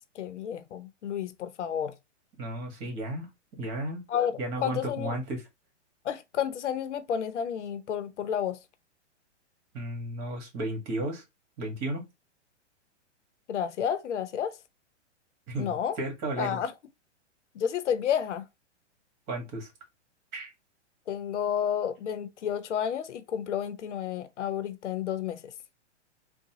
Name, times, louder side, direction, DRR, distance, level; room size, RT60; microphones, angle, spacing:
voice 1, 0.1-1.9 4.1-5.2 6.0-8.6 13.5-14.6 15.6-16.0 16.4-16.7 17.5-18.5 21.1-25.4, left 9 dB, 75° left, 0.7 m, -31 dB
voice 2, 2.4-3.3 3.6-4.0 4.4-5.4 9.7-11.2 11.6-12.0 15.5-16.6 19.3-19.7 20.3-20.5, right 1 dB, 35° right, 1.7 m, -33 dB
3.9 x 2.2 x 2.9 m
hypercardioid pair, 135°, 35 cm